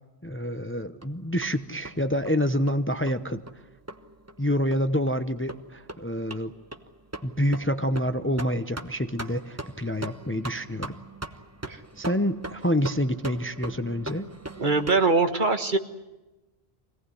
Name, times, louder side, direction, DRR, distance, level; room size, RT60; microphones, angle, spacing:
voice 1, 0.2-3.4 4.4-6.5 7.2-11.0 12.0-14.3, equal, 15° left, 10 dB, 0.8 m, -27 dB
sound 1, 1.0-15.0, right 1 dB, 15° right, 1.2 m, -41 dB
voice 2, 14.6-15.8, right 3 dB, 50° right, 7 dB, 1.6 m, -22 dB
25.5 x 18.0 x 9.8 m, 1.1 s
omnidirectional pair, 1.1 m